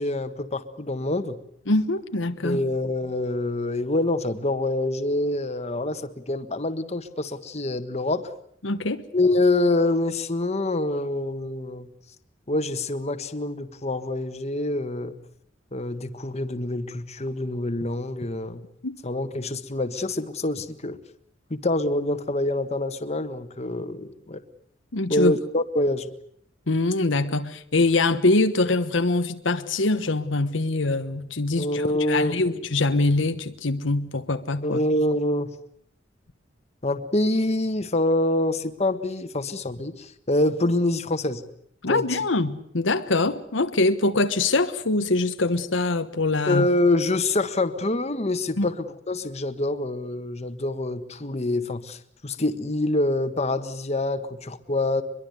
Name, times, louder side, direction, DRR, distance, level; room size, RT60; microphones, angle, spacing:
voice 1, 0.0-1.4 2.4-8.3 9.1-11.9 12.5-15.1 15.7-18.6 19.0-21.0 21.5-24.4 25.1-26.1 31.6-32.4 34.6-35.5 36.8-41.4 41.9-42.2 46.5-55.0, left 2 dB, 35° left, 1.5 m, -26 dB
voice 2, 1.7-2.6 8.6-9.0 18.8-19.0 24.9-25.3 26.7-34.8 41.8-46.7 48.6-48.7, left 2 dB, 80° left, 1.3 m, -23 dB
23.5 x 22.5 x 8.2 m
head